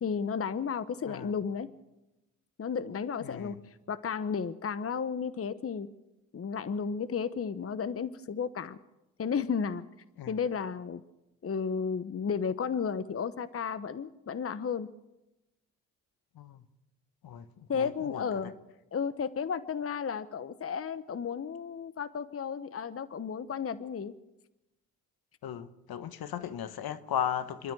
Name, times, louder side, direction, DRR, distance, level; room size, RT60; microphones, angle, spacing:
voice 1, 0.0-1.7 2.6-3.6 3.9-5.9 6.3-8.8 9.2-9.8 10.3-11.0 11.4-14.9 17.7-18.5 18.9-24.1, left 6 dB, 35° left, 1.0 m, -33 dB
voice 2, 3.2-3.6 10.2-10.4 16.3-16.6 17.2-18.5 25.4-27.7, left 9 dB, 60° left, 1.4 m, -36 dB
26.5 x 12.5 x 7.8 m
hypercardioid pair, 50°, 40 cm